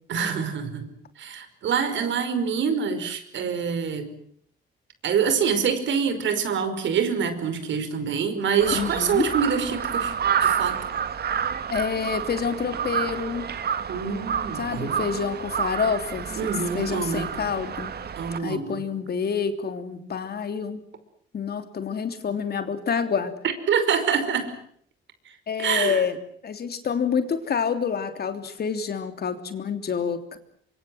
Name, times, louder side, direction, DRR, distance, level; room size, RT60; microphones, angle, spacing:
voice 1, 0.1-0.9 1.2-4.1 5.0-10.1 10.4-10.9 13.9-15.1 16.4-17.3 18.2-18.8 23.4-24.5 25.3-26.1, right 6 dB, 70° right, 10 dB, 5.2 m, -26 dB
Crow, 8.6-18.4, right 8 dB, 55° right, 2.0 m, -29 dB
voice 2, 8.7-9.3 11.7-13.4 14.5-16.5 16.7-17.9 18.4-20.8 21.3-23.3 25.5-26.1 26.4-30.4, left 6 dB, 50° left, 9 dB, 3.3 m, -28 dB
25.0 x 24.5 x 7.8 m, 0.65 s
cardioid pair, 90°, 20 cm